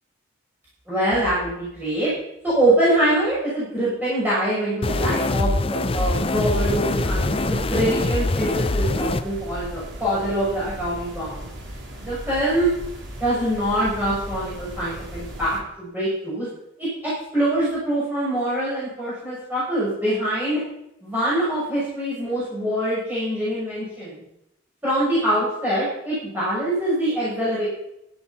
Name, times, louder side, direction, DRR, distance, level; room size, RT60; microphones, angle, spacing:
voice 1, 0.9-2.1 2.4-11.5 12.0-12.7 13.2-16.5 16.8-16.9 17.3-20.6 21.0-24.2 24.8-27.7, right 1 dB, 10° right, -10 dB, 6.4 m, -24 dB
sound 1, 4.8-9.2, left 2 dB, 30° left, 0.6 m, -23 dB
sound 2, 5.9-15.6, equal, 75° right, 3.6 m, -36 dB
14.0 x 10.5 x 6.0 m, 0.83 s
head